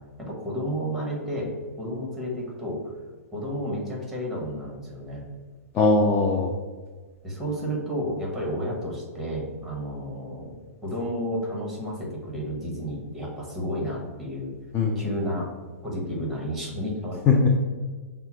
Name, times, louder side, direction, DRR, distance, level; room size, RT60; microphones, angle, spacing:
voice 1, 0.2-1.5 1.8-2.8 3.3-5.2 7.2-10.6 10.8-14.5 14.9-15.5 15.8-17.2, equal, ahead, -3 dB, 1.1 m, -31 dB
voice 2, 5.7-6.5 14.7-15.0 17.3-17.5, left 4 dB, 20° left, 1 dB, 0.3 m, -20 dB
5.3 x 2.0 x 3.0 m, 1.4 s
hypercardioid pair, 140°, 8 cm